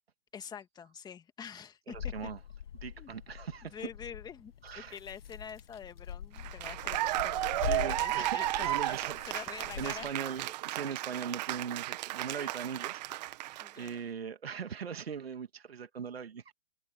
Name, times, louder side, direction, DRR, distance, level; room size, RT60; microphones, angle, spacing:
voice 1, 0.3-2.1 3.0-3.1 3.7-9.0 9.3-10.1 12.3-12.5 13.6-14.0, left 7 dB, 15° left, 2.1 m, -46 dB
sound 1, 1.9-10.1, left 9 dB, 75° left, 1.9 m, -43 dB
voice 2, 1.9-2.4 2.7-3.9 4.6-5.0 7.6-13.4 13.8-16.5, right 7 dB, 90° right, 2.9 m, -40 dB
Cheering / Applause, 6.4-13.9, right 17 dB, 45° right, 2.0 m, -34 dB
hypercardioid pair, 140°, 29 cm